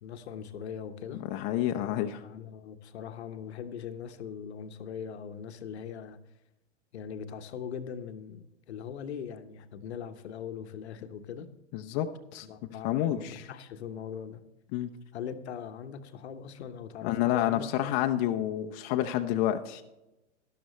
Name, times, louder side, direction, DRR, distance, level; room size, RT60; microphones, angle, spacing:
voice 1, 0.0-1.2 2.2-6.2 6.9-11.5 12.4-14.4 15.1-17.7, left 7 dB, 65° left, 9 dB, 1.1 m, -41 dB
voice 2, 1.3-2.2 11.7-12.1 12.3-12.5 12.8-13.4 14.7-14.9 17.0-19.8, left 12 dB, 35° left, 5 dB, 0.7 m, -29 dB
12.5 x 12.0 x 3.1 m, 0.98 s
hypercardioid pair, 110°, 35 cm